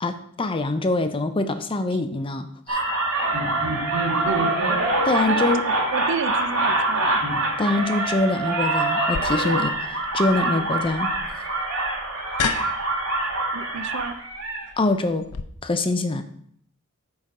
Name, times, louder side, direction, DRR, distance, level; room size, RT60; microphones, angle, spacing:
voice 1, 0.0-2.8 5.1-5.6 7.6-9.8 10.1-11.1 14.8-15.3 15.6-16.2, left 2 dB, 25° left, 9 dB, 0.5 m, -24 dB
sound 1, 2.7-14.7, right 2 dB, 85° right, 2.2 m, -24 dB
voice 2, 4.1-5.5 5.9-7.3 10.5-10.7 13.5-14.1, right 5 dB, 55° right, 11 dB, 0.5 m, -31 dB
sound 2, 9.1-15.4, left 5 dB, 85° left, 0.6 m, -34 dB
8.8 x 3.7 x 5.4 m, 0.64 s
head